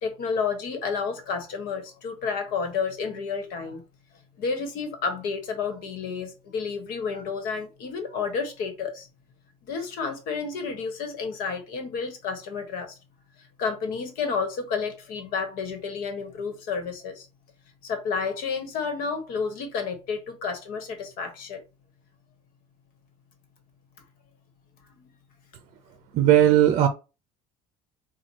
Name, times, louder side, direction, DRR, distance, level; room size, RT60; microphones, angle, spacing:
voice 1, 0.0-3.8 4.4-9.1 9.7-13.0 13.4-17.3 17.8-21.6 25.0-25.1, left 5 dB, 65° left, 1.3 m, -31 dB
voice 2, 26.1-26.9, right 11 dB, 50° right, 0.6 m, -17 dB
4.5 x 2.4 x 4.3 m
cardioid pair, 145°, 16 cm